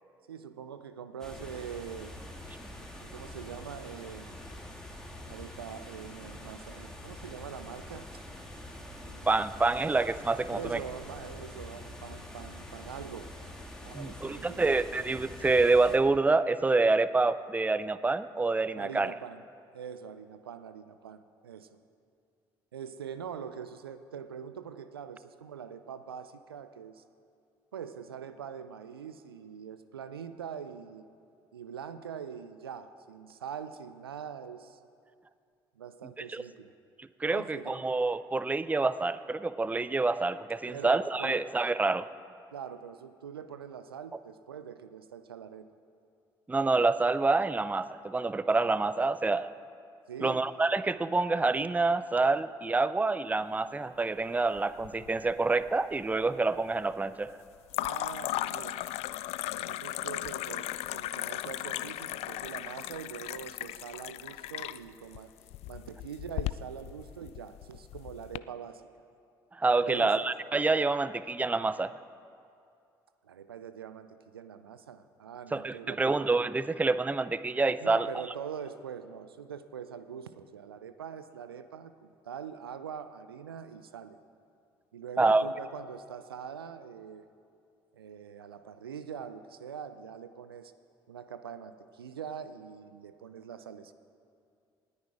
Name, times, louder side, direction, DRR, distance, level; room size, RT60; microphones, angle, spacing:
voice 1, 0.3-2.2 3.0-4.4 5.3-8.1 9.0-9.3 10.5-13.3 13.8-14.6 18.7-19.4 19.7-21.8 22.7-27.0 27.7-31.1 31.5-34.8 35.8-36.7 37.2-37.8 40.7-41.5 42.5-45.7 50.1-50.4 57.8-58.8 59.5-65.3 65.7-68.8 69.8-70.3 73.2-76.1 77.8-84.2 84.9-87.3 87.9-90.7 91.1-93.9, right 8 dB, 90° right, 12 dB, 0.5 m, -43 dB
sound 1, 1.2-16.0, left 1 dB, 5° left, 2.5 m, -45 dB
voice 2, 9.3-10.8 13.9-19.1 36.3-36.4 37.0-42.1 46.5-49.5 50.2-57.3 69.5-71.9 75.5-78.1 85.2-85.4, right 3 dB, 15° right, 15 dB, 0.5 m, -27 dB
sound 2, 54.6-55.3 55.6-56.2 57.7-68.4, left 15 dB, 60° left, 0.4 m, -37 dB
19.0 x 9.7 x 4.8 m, 2.4 s
hypercardioid pair, 55°, 12 cm